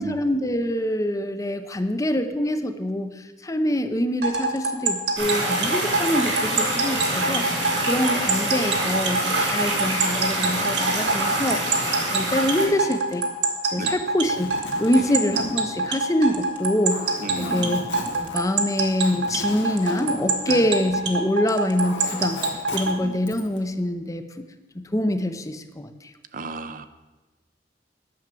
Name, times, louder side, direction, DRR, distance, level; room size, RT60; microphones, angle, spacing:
voice 1, 0.0-13.2 13.7-17.8 18.1-22.5 22.7-24.4 24.7-26.1, left 1 dB, 20° left, 9 dB, 0.7 m, -25 dB
sound 1, 4.2-23.0, right 3 dB, 70° right, 1.7 m, -25 dB
sound 2, 5.2-12.7, right 2 dB, 90° right, 4.6 m, -26 dB
Zipper (clothing), 14.1-21.2 21.5-23.6, left 2 dB, 90° left, 1.8 m, -38 dB
voice 2, 17.2-17.8 20.5-20.7 22.9-23.2 26.3-26.9, right 3 dB, 50° right, 11 dB, 0.7 m, -34 dB
10.5 x 6.5 x 7.6 m, 1.2 s
head